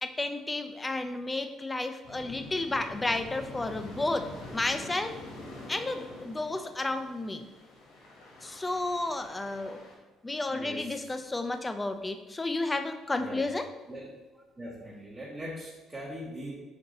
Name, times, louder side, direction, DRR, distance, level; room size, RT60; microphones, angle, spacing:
voice 1, 0.0-5.2 5.7-7.5 8.4-9.8 10.2-13.7, left 2 dB, 10° left, 8 dB, 0.4 m, -32 dB
sound 1, 2.0-10.0, left 2 dB, 85° left, 1.9 m, -46 dB
voice 2, 10.5-11.1 13.2-13.4 13.9-14.1 14.3-16.5, equal, 15° right, -5 dB, 0.8 m, -41 dB
6.1 x 4.0 x 3.8 m, 1.2 s
cardioid pair, 170°, 0 cm